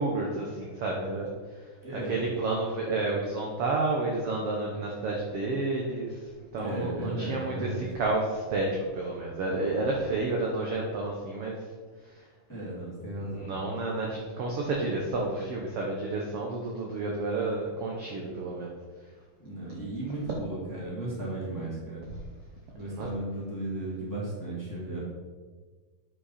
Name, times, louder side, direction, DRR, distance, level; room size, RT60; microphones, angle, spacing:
voice 1, 0.0-11.7 12.0-12.6 13.2-18.7 22.9-23.1, right 2 dB, 65° right, -1 dB, 1.6 m, -31 dB
voice 2, 1.8-2.2 6.6-7.9 12.5-13.5 19.4-22.1 22.8-25.0, right 1 dB, 5° left, -6 dB, 2.0 m, -35 dB
9.9 x 5.4 x 4.2 m, 1.4 s
omnidirectional pair, 3.6 m